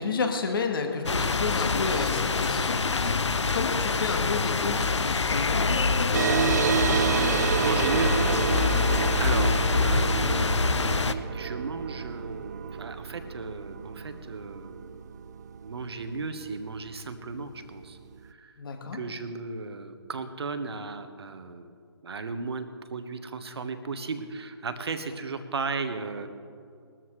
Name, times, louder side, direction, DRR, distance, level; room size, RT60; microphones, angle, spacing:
voice 1, 0.0-7.0 18.6-19.0, left 4 dB, 50° left, 4 dB, 1.8 m, -31 dB
sound 1, 1.1-11.1, left 4 dB, 85° left, 0.7 m, -25 dB
sound 2, 6.1-17.1, right 7 dB, 40° right, 0.4 m, -29 dB
voice 2, 7.6-8.1 8.6-10.5 11.3-15.1 15.6-18.5 18.9-21.7 22.0-26.3, right 4 dB, 65° right, 8 dB, 1.3 m, -35 dB
20.0 x 13.5 x 3.2 m, 2.3 s
figure-of-eight pair, 150°, 15 cm